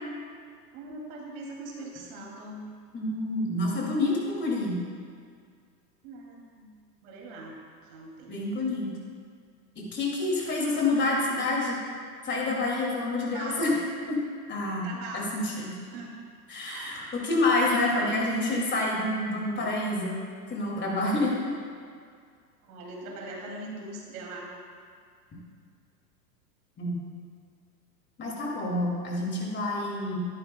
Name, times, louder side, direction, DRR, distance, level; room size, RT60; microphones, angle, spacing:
voice 1, 0.7-2.6 6.0-6.7 7.0-8.4 13.3-13.9 14.8-15.5 15.9-16.2 16.6-16.9 22.6-24.5, right 2 dB, 55° right, -1 dB, 2.7 m, -41 dB
voice 2, 2.9-4.8 8.3-8.9 9.8-11.8 12.2-13.7 14.1-14.2 14.5-14.9 15.1-15.7 16.5-20.2 20.5-21.5 26.8-27.0 28.2-30.2, left 2 dB, 20° left, -3 dB, 2.4 m, -28 dB
13.5 x 11.5 x 2.2 m, 2.2 s
hypercardioid pair, 110°, 48 cm